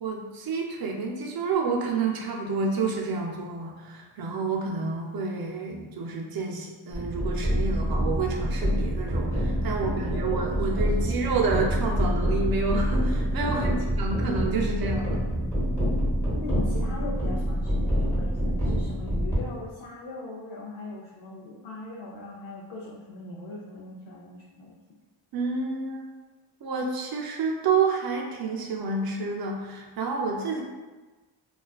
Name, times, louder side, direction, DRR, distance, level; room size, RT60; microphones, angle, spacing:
voice 1, 0.0-13.7 14.0-15.2 25.3-26.1 26.6-30.6, right 4 dB, 50° right, 0 dB, 0.5 m, -29 dB
sound 1, 6.9-19.4, equal, 5° left, 0.8 m, -26 dB
voice 2, 9.6-11.2 13.4-13.8 16.4-24.7, left 2 dB, 75° left, -4 dB, 0.5 m, -40 dB
2.3 x 2.3 x 2.3 m, 1.2 s
wide cardioid pair, 120°, 48 cm